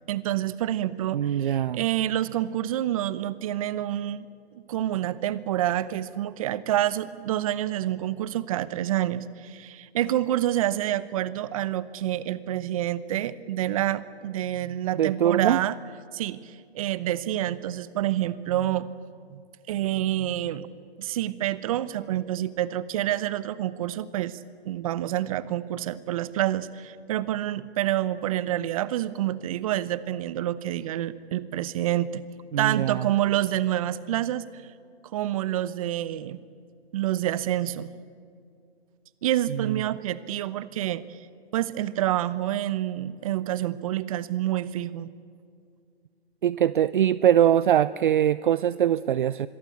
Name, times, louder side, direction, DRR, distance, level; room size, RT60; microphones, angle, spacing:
voice 1, 0.1-4.3 4.7-15.8 16.1-18.9 19.3-19.4 19.7-20.7 21.0-24.4 24.6-32.2 32.6-34.5 35.1-36.4 36.9-37.9 39.2-41.0 41.5-45.1, right 13 dB, 35° right, 17 dB, 0.9 m, -28 dB
voice 2, 1.1-1.8 15.0-15.6 32.5-33.0 46.4-49.5, right 10 dB, 50° right, 18 dB, 0.6 m, -22 dB
26.0 x 22.0 x 8.5 m, 2.3 s
hypercardioid pair, 145°, 32 cm